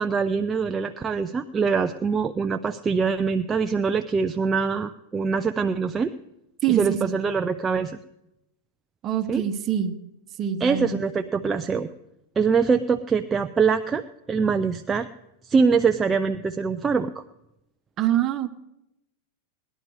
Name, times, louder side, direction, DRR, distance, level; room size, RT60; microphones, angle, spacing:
voice 1, 0.0-6.1 6.7-8.0 9.3-9.4 10.6-11.9 12.4-14.0 14.3-15.1 15.4-17.2, right 5 dB, 20° right, 7 dB, 0.5 m, -23 dB
voice 2, 6.6-7.2 9.0-10.0 10.4-11.0 18.0-18.5, right 10 dB, 35° right, 9 dB, 1.2 m, -25 dB
18.5 x 11.0 x 4.8 m, 0.87 s
hypercardioid pair, 120°, 0 cm